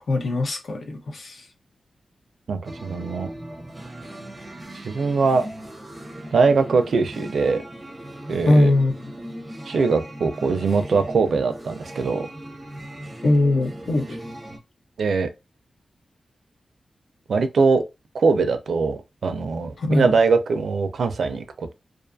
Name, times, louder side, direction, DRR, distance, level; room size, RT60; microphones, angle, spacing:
voice 1, 0.1-1.4 8.5-9.0 13.2-14.2 19.8-20.1, left 2 dB, 60° left, 0.6 m, -21 dB
voice 2, 2.5-3.3 4.7-5.5 6.3-7.6 8.3-8.7 9.7-12.2 15.0-15.3 17.3-17.8 18.1-21.7, right 4 dB, 70° right, 0.4 m, -22 dB
sound 1, 2.6-14.6, right 1 dB, 15° right, 0.5 m, -38 dB
2.4 x 2.4 x 2.5 m
wide cardioid pair, 125°, 0 cm